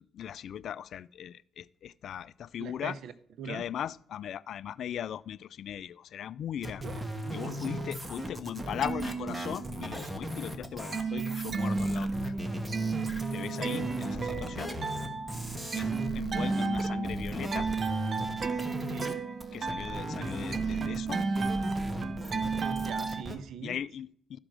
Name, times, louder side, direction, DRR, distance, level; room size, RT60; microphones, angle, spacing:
voice 1, 0.0-3.0 3.4-6.8 7.3-12.3 13.3-14.8 15.7-17.7 19.5-21.2 23.6-24.4, left 10 dB, 65° left, 0.3 m, -39 dB
voice 2, 2.6-3.1 3.4-3.7 6.8-7.8 18.7-19.2 22.7-23.8, right 6 dB, 75° right, 0.8 m, -42 dB
sound 1, 6.6-19.1 19.4-23.4, equal, 15° right, 1.4 m, -37 dB
sound 2, 8.6-10.0 10.4-23.2, right 4 dB, 45° right, 0.9 m, -33 dB
13.0 x 5.1 x 6.1 m
cardioid pair, 90°, 0 cm